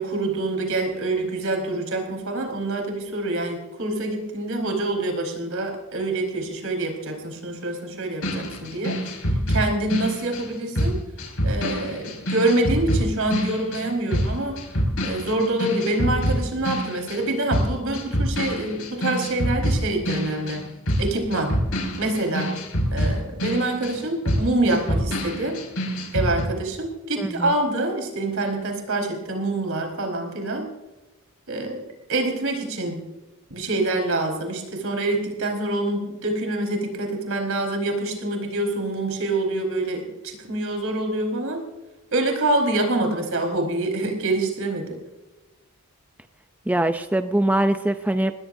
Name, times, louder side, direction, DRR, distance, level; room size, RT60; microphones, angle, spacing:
voice 1, 0.0-11.0 11.4-14.6 15.0-20.6 21.0-21.5 22.0-22.5 22.9-25.6 26.1-30.7 31.5-31.8 32.1-33.0 33.5-41.6 42.1-45.0, right 2 dB, 65° right, 2 dB, 4.7 m, -26 dB
sound 1, 8.2-17.2 17.5-26.4, equal, 70° left, 5.3 m, -26 dB
voice 2, 27.2-27.5 46.7-48.3, right 1 dB, 5° right, 8 dB, 0.5 m, -22 dB
23.0 x 19.5 x 2.7 m, 1.1 s
head